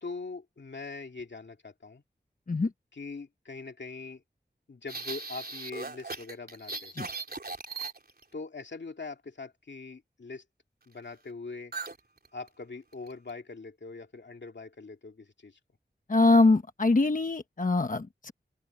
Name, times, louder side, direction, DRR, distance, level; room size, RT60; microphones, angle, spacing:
voice 1, 0.0-2.0 2.9-4.2 4.7-6.9 8.3-10.4 10.9-11.7 12.3-15.6, left 3 dB, 80° left, 2.5 m, -42 dB
sound 1, 4.9-8.3 11.7-12.0 12.2-12.5 12.9-13.3, right 4 dB, 60° right, 3.8 m, -38 dB
voice 2, 16.1-18.3, left 3 dB, 50° left, 1.1 m, -23 dB
open air
wide cardioid pair, 60°, 18 cm